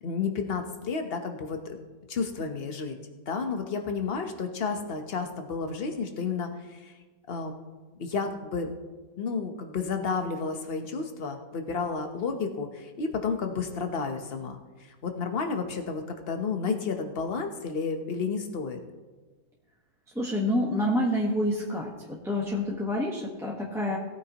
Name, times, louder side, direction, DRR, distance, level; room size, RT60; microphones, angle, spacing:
voice 1, 0.0-1.8 2.1-3.0 3.3-6.9 7.3-7.5 8.0-8.7 9.2-14.6 15.0-18.8, left 5 dB, 45° left, 5 dB, 1.1 m, -31 dB
voice 2, 20.1-24.0, left 1 dB, ahead, -4 dB, 1.1 m, -28 dB
18.0 x 9.0 x 3.0 m, 1.3 s
omnidirectional pair, 1.7 m